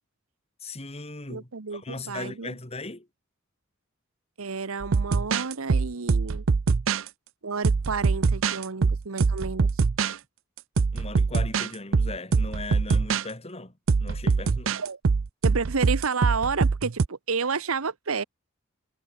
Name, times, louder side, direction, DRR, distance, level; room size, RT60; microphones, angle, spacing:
voice 1, 0.6-3.1 10.9-14.8, left 2 dB, 30° left, 2.4 m, -38 dB
voice 2, 1.3-2.5 4.4-6.4 7.4-9.7 14.7-15.0 15.4-18.2, right 5 dB, 85° right, 1.1 m, -30 dB
sound 1, 4.8-7.1 7.6-10.1 10.8-11.7 11.9-13.2 13.9-17.1, right 4 dB, 65° right, 0.5 m, -23 dB
head